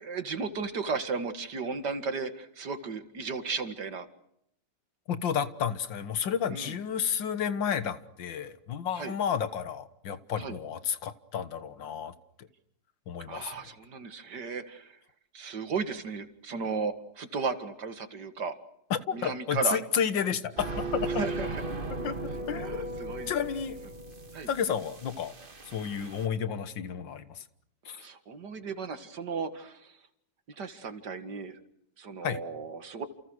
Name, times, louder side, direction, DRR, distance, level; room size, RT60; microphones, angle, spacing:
voice 1, 0.0-4.1 6.5-6.7 9.0-9.2 10.4-10.6 13.3-15.0 15.3-18.6 19.1-19.8 21.1-21.6 22.5-23.3 24.3-24.5 27.9-29.9 30.5-31.6 32.0-33.1, right 5 dB, 65° right, 10 dB, 2.5 m, -35 dB
voice 2, 5.1-12.5 13.1-13.5 18.9-21.3 22.0-22.2 22.5-22.9 23.3-23.8 24.5-25.3 25.7-27.4 27.9-28.0 32.2-32.4, left 8 dB, 85° left, 13 dB, 2.1 m, -31 dB
sound 1, 20.6-26.3, right 2 dB, 30° right, 1.8 m, -37 dB
29.0 x 29.0 x 6.5 m, 0.72 s
omnidirectional pair, 2.0 m